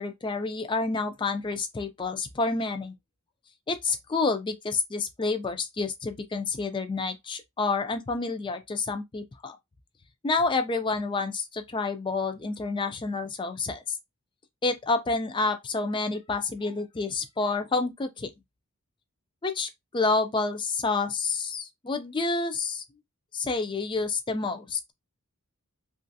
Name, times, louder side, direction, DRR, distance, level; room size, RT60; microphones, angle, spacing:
voice 1, 0.0-2.9 3.7-9.6 10.2-14.0 14.6-18.3 19.4-22.8 23.3-24.8, left 3 dB, 20° left, 0.4 m, -29 dB
3.0 x 2.4 x 2.6 m
head